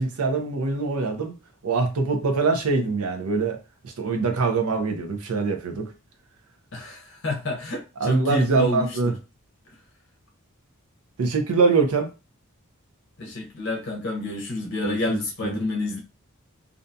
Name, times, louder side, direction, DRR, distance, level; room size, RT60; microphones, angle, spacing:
voice 1, 0.0-1.4 1.6-3.6 3.8-5.9 8.0-9.1 11.2-12.1 14.8-15.6, right 4 dB, 90° right, 0.6 m, -24 dB
voice 2, 6.7-9.1 13.2-16.0, left 1 dB, 55° left, 0.6 m, -29 dB
2.5 x 2.2 x 2.6 m
head